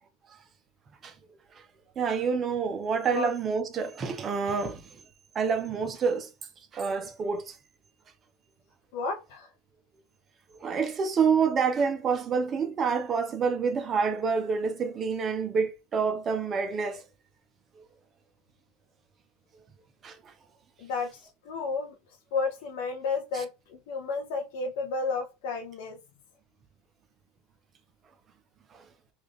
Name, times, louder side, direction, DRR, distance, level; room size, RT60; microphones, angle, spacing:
voice 1, 2.0-4.9 5.3-6.3 6.7-7.6 10.6-17.0 20.0-20.3 28.7-28.8, right 5 dB, 25° right, 0.5 m, -27 dB
voice 2, 8.9-9.5 20.8-21.9 22.3-26.0, left 4 dB, 70° left, 0.5 m, -32 dB
3.2 x 2.4 x 3.5 m
supercardioid pair, 140°, 0 cm